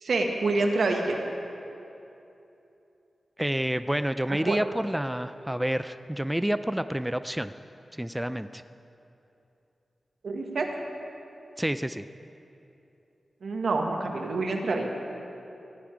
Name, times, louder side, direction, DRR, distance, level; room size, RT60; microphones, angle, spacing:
voice 1, 0.0-1.2 4.5-4.6 10.2-10.7 13.4-14.9, right 3 dB, 80° right, 2 dB, 1.3 m, -27 dB
voice 2, 3.4-7.5 8.0-8.6 11.6-12.0, right 1 dB, 10° right, 11 dB, 0.3 m, -29 dB
15.0 x 10.0 x 4.9 m, 2.8 s
cardioid pair, 70°, 0 cm